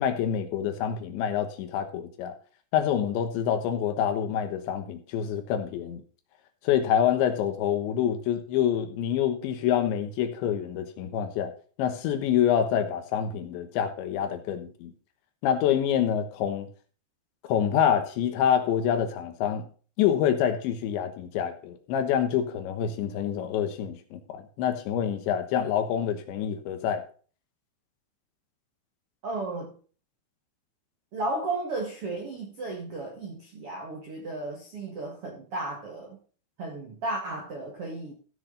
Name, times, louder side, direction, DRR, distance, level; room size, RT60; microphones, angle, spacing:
voice 1, 0.0-2.3 2.7-6.0 6.6-11.5 11.8-14.9 15.4-16.7 17.5-19.7 20.0-27.0, left 9 dB, 75° left, 3.3 m, -26 dB
voice 2, 29.2-29.7 31.1-36.2 36.6-38.1, right 2 dB, 60° right, 1.4 m, -34 dB
15.0 x 6.6 x 3.9 m
omnidirectional pair, 5.5 m